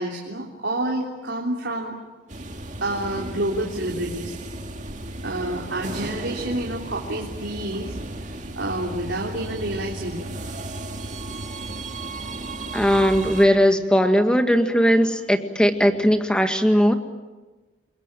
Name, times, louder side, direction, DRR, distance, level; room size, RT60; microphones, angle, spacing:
voice 1, 0.0-2.0 2.8-4.3 5.2-8.0 8.3-10.3, right 1 dB, 75° right, -2 dB, 3.5 m, -28 dB
sound 1, 2.3-13.5, right 2 dB, 40° right, 2.3 m, -34 dB
voice 2, 12.7-16.9, equal, 5° left, 6 dB, 1.9 m, -18 dB
29.5 x 22.5 x 9.1 m, 1.2 s
head